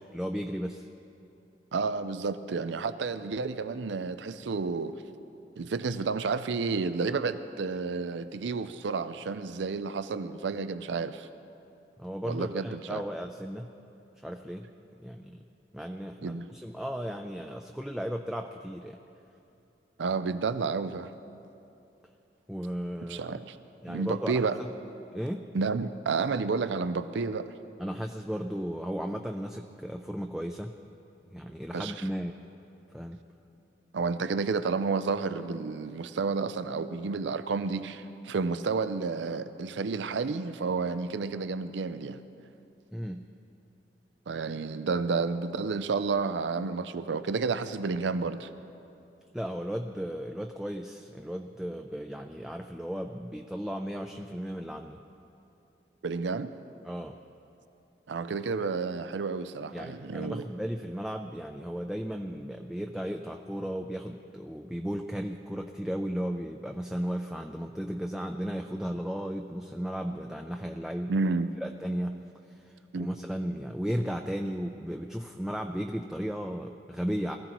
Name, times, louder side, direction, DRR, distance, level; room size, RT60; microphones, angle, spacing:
voice 1, 0.1-0.9 12.0-13.7 14.2-14.7 15.0-15.4 15.7-19.0 22.5-23.4 23.8-24.7 25.1-25.5 27.8-30.7 31.3-32.4 32.9-33.2 42.9-43.2 49.3-55.0 56.8-57.2 59.7-71.1 71.6-72.2 72.5-77.4, equal, 5° right, 4 dB, 0.4 m, -35 dB
voice 2, 1.7-5.0 5.6-11.3 12.3-13.0 16.2-16.5 20.0-21.1 23.1-23.6 23.9-24.6 25.5-27.5 31.7-32.0 33.9-42.2 44.3-48.5 56.0-56.5 58.1-60.4 71.1-71.5 72.9-73.1, right 4 dB, 90° right, 12 dB, 0.5 m, -31 dB
22.0 x 15.0 x 3.0 m, 2.8 s
head